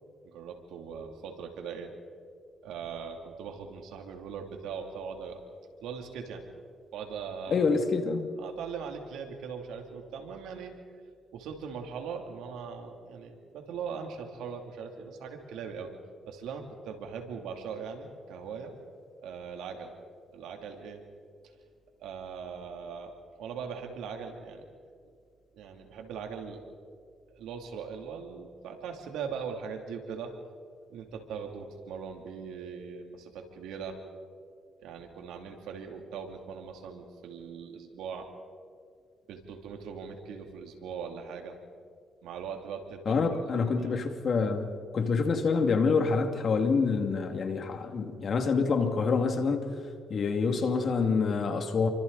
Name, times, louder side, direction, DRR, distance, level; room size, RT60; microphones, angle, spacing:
voice 1, 0.2-1.9 2.6-5.4 5.8-6.4 6.9-7.6 8.4-10.7 11.3-15.9 16.3-18.8 19.2-19.9 20.3-21.0 22.0-23.1 23.4-24.6 25.5-26.6 27.3-30.3 30.9-34.0 34.8-38.3 39.3-41.6 42.2-43.2 43.5-44.0, right 6 dB, 90° right, 3 dB, 3.0 m, -40 dB
voice 2, 7.5-8.3 43.1-49.7 50.1-51.9, left 4 dB, 50° left, 5 dB, 2.4 m, -27 dB
30.0 x 24.5 x 4.2 m, 2.1 s
cardioid pair, 90°, 0 cm